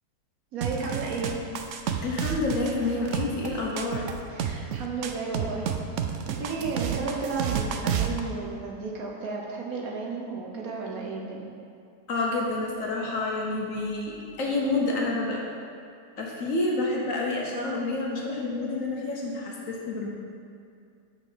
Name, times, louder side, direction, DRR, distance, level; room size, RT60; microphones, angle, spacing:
voice 1, 0.5-1.4 4.3-5.9 6.3-11.5, right 4 dB, 60° right, -2 dB, 1.3 m, -33 dB
sound 1, 0.6-8.2, right 7 dB, 90° right, 0.6 m, -30 dB
voice 2, 2.0-4.1 12.1-15.4 16.2-20.1, left 2 dB, 55° left, -2 dB, 1.2 m, -28 dB
6.0 x 5.2 x 6.2 m, 2.4 s
omnidirectional pair, 1.8 m